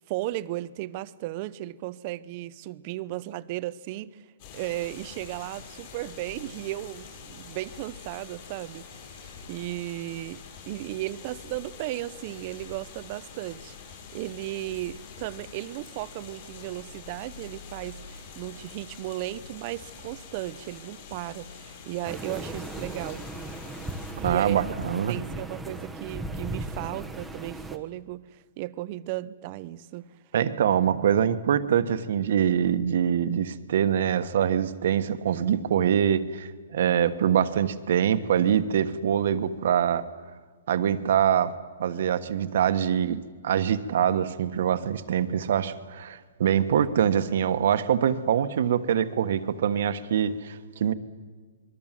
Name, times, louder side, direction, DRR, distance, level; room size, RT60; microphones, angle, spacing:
voice 1, 0.1-4.2 4.5-8.9 9.1-23.2 24.2-24.7 25.1-30.1, right 16 dB, 35° right, 0.7 m, -35 dB
sound 1, 4.4-24.1, left 6 dB, 40° left, 7.9 m, -45 dB
sound 2, 22.0-27.8, right 1 dB, ahead, 1.2 m, -37 dB
voice 2, 24.2-25.2 30.3-40.0 40.7-41.5 41.8-50.9, right 9 dB, 60° right, 1.4 m, -24 dB
27.0 x 22.0 x 7.6 m
hypercardioid pair, 165°, 0 cm